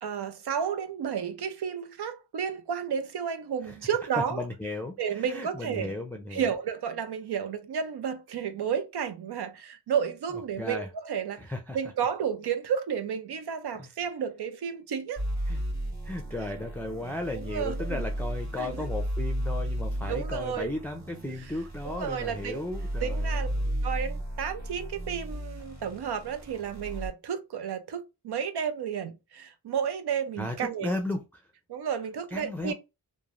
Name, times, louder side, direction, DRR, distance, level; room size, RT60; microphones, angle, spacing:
voice 1, 0.0-4.4 5.0-6.0 6.3-15.2 17.3-18.0 18.6-18.9 20.1-20.7 21.8-22.7 23.0-23.5 23.8-30.9 31.7-32.7, right 7 dB, 80° right, 0.6 m, -32 dB
voice 2, 4.2-6.5 10.6-10.9 11.4-11.8 13.8-13.9 15.5-15.6 16.0-23.8 30.4-31.4 32.3-32.7, left 2 dB, 5° left, 0.4 m, -35 dB
sound 1, 15.2-27.1, equal, 45° right, 1.3 m, -34 dB
3.1 x 2.2 x 2.5 m
cardioid pair, 60°, 39 cm